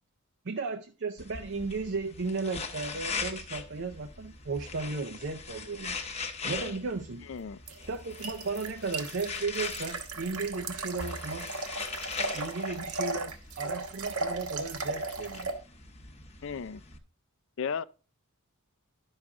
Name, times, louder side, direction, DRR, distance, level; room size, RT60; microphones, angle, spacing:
voice 1, 0.4-6.0 6.4-7.3 7.9-11.5 12.3-15.5, right 4 dB, 55° right, 0.6 m, -35 dB
sound 1, 1.2-17.0, left 4 dB, 30° left, 0.9 m, -41 dB
voice 2, 7.3-7.6 16.4-16.8 17.6-17.8, left 6 dB, 55° left, 0.4 m, -34 dB
sound 2, 7.7-15.5, right 3 dB, 80° right, 1.3 m, -36 dB
11.0 x 6.4 x 3.6 m
head